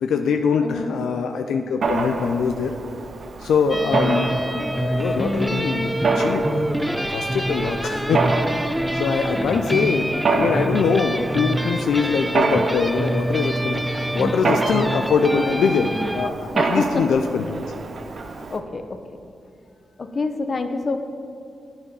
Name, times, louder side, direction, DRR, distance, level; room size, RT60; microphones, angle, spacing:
voice 1, 0.0-2.7 3.4-6.7 7.1-8.2 8.9-17.6, left 5 dB, 85° left, 5 dB, 0.4 m, -23 dB
voice 2, 0.6-1.0 3.7-4.0 16.5-17.1 18.5-19.2 20.0-21.0, left 3 dB, 55° left, 8 dB, 0.7 m, -27 dB
Mechanisms, 1.8-18.6, right 3 dB, 65° right, 0.7 m, -28 dB
sound 1, 3.7-16.3, right 1 dB, 5° right, 0.5 m, -26 dB
8.9 x 7.0 x 5.3 m, 2.5 s
cardioid pair, 55°, 0 cm